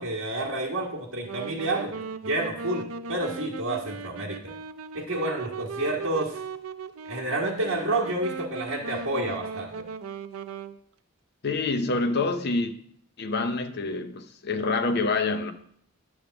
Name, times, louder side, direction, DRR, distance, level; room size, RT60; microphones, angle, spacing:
voice 1, 0.0-2.8 3.1-4.5 4.9-6.4 7.1-9.9, right 2 dB, 70° right, 1.3 m, -29 dB
Wind instrument woodwind instrument, 1.2-10.8, right 5 dB, 85° right, 0.5 m, -38 dB
voice 2, 11.4-12.7 13.2-15.5, left 3 dB, 50° left, 0.7 m, -26 dB
10.0 x 3.5 x 6.8 m
head